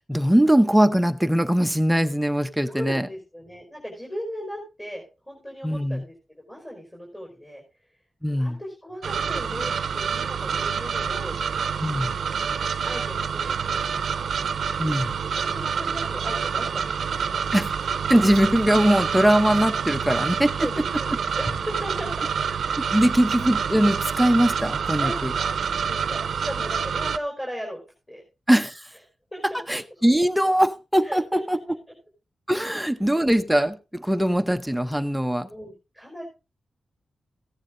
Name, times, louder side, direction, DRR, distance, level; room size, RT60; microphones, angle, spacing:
voice 1, 0.1-3.1 5.6-6.0 8.2-8.6 11.8-12.2 14.8-15.1 17.5-17.7 18.1-20.5 22.9-25.3 28.5-28.9 29.5-31.6 32.5-35.5, equal, 5° right, 0.8 m, -21 dB
voice 2, 2.6-7.6 8.4-11.4 11.9-12.5 12.8-14.3 15.4-17.4 20.6-22.5 22.9-23.1 25.0-25.5 25.8-27.8 28.1-28.2 29.3-29.6 31.0-31.4 35.4-36.3, equal, 15° left, 5.0 m, -37 dB
sound 1, 9.0-27.2, right 6 dB, 85° right, 0.7 m, -27 dB
15.5 x 9.4 x 3.8 m
wide cardioid pair, 120°, 0 cm